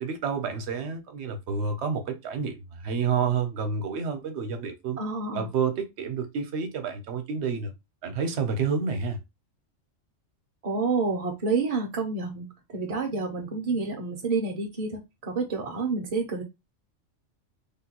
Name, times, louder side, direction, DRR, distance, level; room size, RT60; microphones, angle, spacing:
voice 1, 0.0-5.0 5.3-7.7 8.0-9.2, right 5 dB, 65° right, 0.9 m, -29 dB
voice 2, 5.0-5.5 10.6-16.4, right 4 dB, 45° right, 0.5 m, -29 dB
3.5 x 2.2 x 2.8 m
omnidirectional pair, 1.3 m